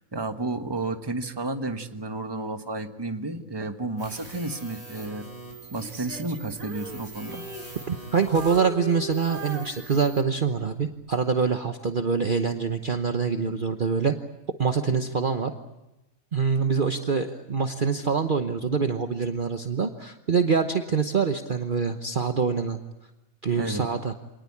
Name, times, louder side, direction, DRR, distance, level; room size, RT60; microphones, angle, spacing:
voice 1, 0.0-5.2 5.7-7.4 23.5-23.9, right 2 dB, 20° right, 7 dB, 1.3 m, -32 dB
sound 1, 4.0-8.7 9.1-10.2, right 3 dB, 25° left, 7.3 m, -44 dB
Female singing, 5.8-8.1 8.3-10.4 10.9-11.2, right 2 dB, 70° right, 2.5 m, -38 dB
voice 2, 7.9-14.1 14.6-15.5 16.3-22.8 23.4-24.1, right 5 dB, 40° right, 6 dB, 1.1 m, -25 dB
26.0 x 19.5 x 8.6 m, 1.0 s
omnidirectional pair, 1.5 m